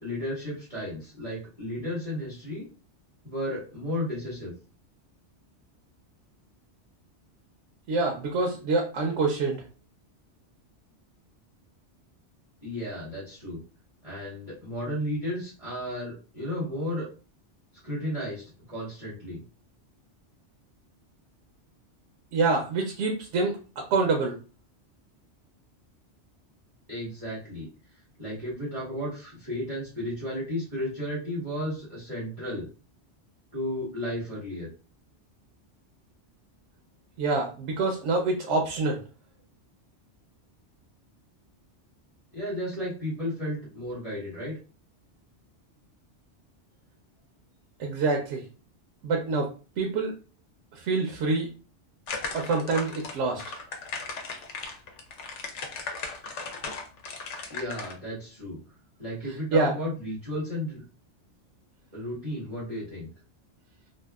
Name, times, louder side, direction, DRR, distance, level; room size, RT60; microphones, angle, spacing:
voice 1, 0.0-2.6 3.2-4.5 12.6-13.6 14.0-17.1 17.8-19.4 26.9-27.7 28.2-32.7 33.5-34.7 42.3-44.6 57.5-58.6 59.0-60.8 61.9-63.1, equal, 30° right, -9 dB, 1.3 m, -33 dB
voice 2, 7.9-9.6 22.3-23.6 23.9-24.3 37.2-39.0 47.8-48.4 49.0-49.5 49.8-50.1 50.7-51.5 52.3-53.4 59.5-59.7, right 3 dB, 90° right, 1 dB, 0.9 m, -26 dB
sound 1, 52.1-57.9, left 4 dB, 85° left, 0.9 m, -37 dB
2.7 x 2.4 x 2.3 m, 0.34 s
omnidirectional pair, 1.2 m